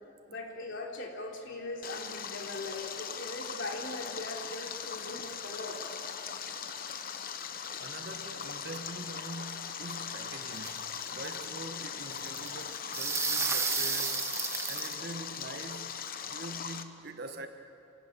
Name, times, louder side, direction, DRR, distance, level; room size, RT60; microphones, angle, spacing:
voice 1, 0.3-5.8, left 2 dB, 60° left, 0 dB, 3.4 m, -40 dB
Stream, 1.8-16.8, left 7 dB, 45° left, 1.0 m, -40 dB
voice 2, 7.8-17.5, right 2 dB, 50° right, 6 dB, 1.5 m, -44 dB
sound 1, 10.5-11.3 12.2-15.0, right 4 dB, 15° right, 1.0 m, -32 dB
26.5 x 18.5 x 7.5 m, 2.7 s
head